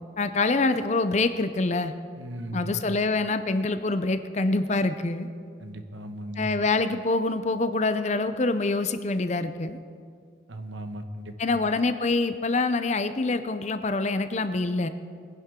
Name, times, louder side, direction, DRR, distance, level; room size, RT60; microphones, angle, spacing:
voice 1, 0.2-1.9 2.5-5.3 6.4-9.8 11.4-14.9, left 3 dB, 35° left, 11 dB, 0.5 m, -25 dB
voice 2, 2.2-2.8 5.6-6.5 10.5-11.7, right 1 dB, 75° right, 7 dB, 1.0 m, -37 dB
20.5 x 10.5 x 3.7 m, 2.2 s
head